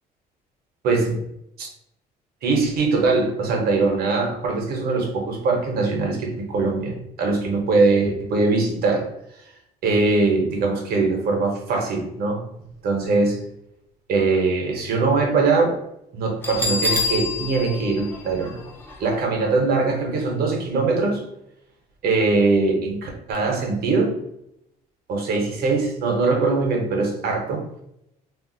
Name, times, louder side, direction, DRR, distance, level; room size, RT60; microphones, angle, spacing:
voice 1, 0.8-1.2 1.6-1.7 2.4-9.1 9.8-12.4 12.8-13.4 14.1-15.8 16.1-18.6 19.0-21.2 22.0-24.1 25.1-27.6, right 3 dB, 65° right, 1 dB, 0.9 m, -21 dB
Bell, 16.4-19.1, left 3 dB, 15° left, 0.6 m, -27 dB
2.5 x 2.1 x 3.8 m, 0.78 s
cardioid pair, 110°, 17 cm